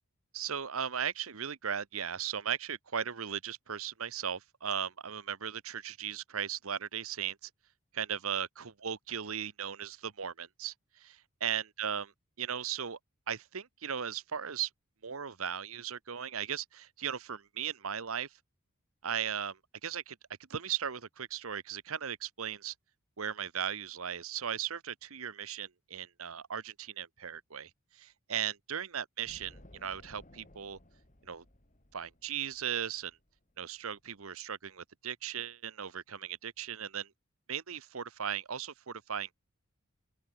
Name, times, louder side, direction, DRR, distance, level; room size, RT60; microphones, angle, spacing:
voice 1, 0.3-7.5 7.9-12.1 12.4-13.0 13.3-14.7 15.0-18.3 19.0-20.2 20.5-22.7 23.2-30.8 31.2-31.4 31.9-33.2 33.6-37.1 37.5-39.3, right 8 dB, 70° right, 1.0 m, -37 dB
sound 1, 29.2-34.1, left 1 dB, 35° left, 3.1 m, -58 dB
open air
head